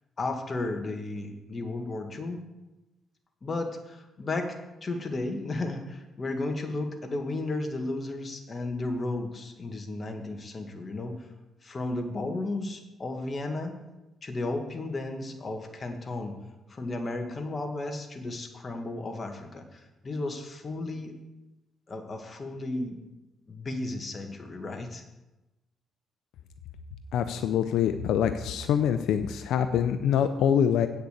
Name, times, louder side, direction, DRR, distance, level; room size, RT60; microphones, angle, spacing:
voice 1, 0.2-2.4 3.4-4.5 4.8-11.2 11.6-13.8 14.2-16.3 16.7-21.1 21.9-23.0 23.5-25.0, left 2 dB, 35° left, 4 dB, 1.9 m, -34 dB
voice 2, 27.1-30.9, left 8 dB, 80° left, 9 dB, 0.6 m, -25 dB
8.6 x 6.7 x 8.0 m, 1.0 s
cardioid pair, 90°, 0 cm